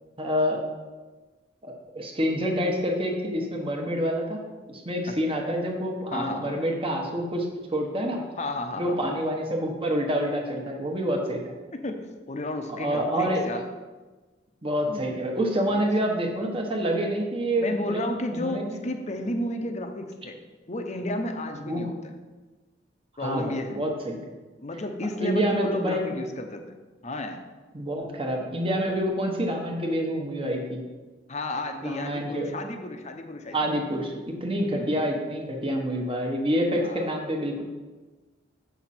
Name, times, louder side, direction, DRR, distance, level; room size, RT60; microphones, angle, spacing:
voice 1, 0.2-0.6 1.6-4.4 4.7-7.5 7.7-8.2 8.8-11.4 12.7-13.4 14.6-18.0 18.3-18.6 21.7-21.8 23.2-24.2 25.2-26.1 27.7-30.8 31.8-32.5 33.5-37.6, equal, 30° right, 1 dB, 1.2 m, -27 dB
voice 2, 6.1-6.6 8.4-9.1 11.7-13.6 14.9-15.1 15.7-15.8 17.6-20.4 20.7-22.1 23.2-23.8 24.6-26.7 27.0-27.4 31.3-33.6 34.7-35.0 36.7-37.1, left 1 dB, 40° left, 5 dB, 0.8 m, -32 dB
7.3 x 6.1 x 4.3 m, 1.3 s
head